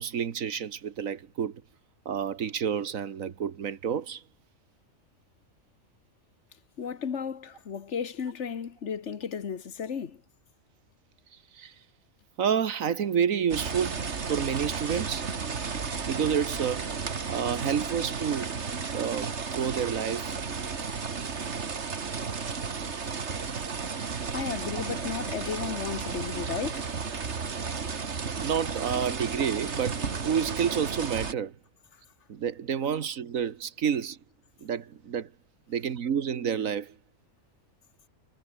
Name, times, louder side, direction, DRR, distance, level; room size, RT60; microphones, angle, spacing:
voice 1, 0.0-1.6 2.0-4.2 11.5-11.7 12.4-14.0 14.3-15.3 16.0-16.9 17.3-18.5 18.9-20.3 24.7-24.9 28.4-31.6 32.3-34.2 34.6-35.3 35.7-36.9, right 7 dB, 85° right, 1.7 m, -29 dB
voice 2, 6.8-10.2 24.3-26.9, left 6 dB, 60° left, 1.5 m, -34 dB
sound 1, 13.5-31.3, right 5 dB, 60° right, 2.0 m, -33 dB
omnidirectional pair, 1.4 m